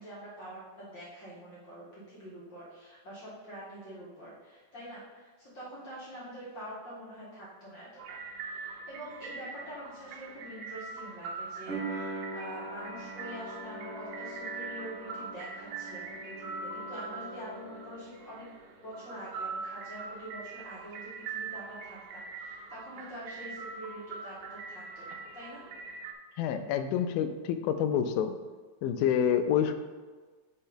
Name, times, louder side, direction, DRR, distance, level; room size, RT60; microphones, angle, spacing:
voice 1, 0.0-18.5 18.8-25.6, equal, 45° left, -9 dB, 1.8 m, -45 dB
sound 1, 8.0-26.1, right 4 dB, 80° right, 2.1 m, -42 dB
sound 2, 11.7-18.5 18.7-19.6, right 2 dB, 45° right, 1.7 m, -43 dB
voice 2, 26.4-28.3 28.8-29.8, left 8 dB, 85° left, 8 dB, 2.3 m, -27 dB
5.2 x 4.5 x 5.6 m, 1.4 s
omnidirectional pair, 4.2 m